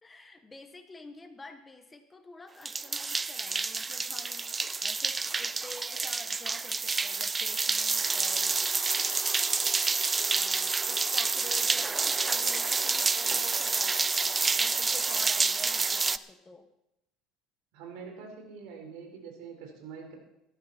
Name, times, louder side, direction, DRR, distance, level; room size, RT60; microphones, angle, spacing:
voice 1, 0.0-8.6 10.3-16.7, left 3 dB, 15° left, 8 dB, 1.3 m, -49 dB
sound 1, 2.7-16.2, right 4 dB, 20° right, 0.4 m, -28 dB
voice 2, 17.7-20.2, right 5 dB, 75° right, 2 dB, 4.6 m, -44 dB
17.0 x 13.0 x 4.4 m, 0.85 s
cardioid pair, 135°, 0 cm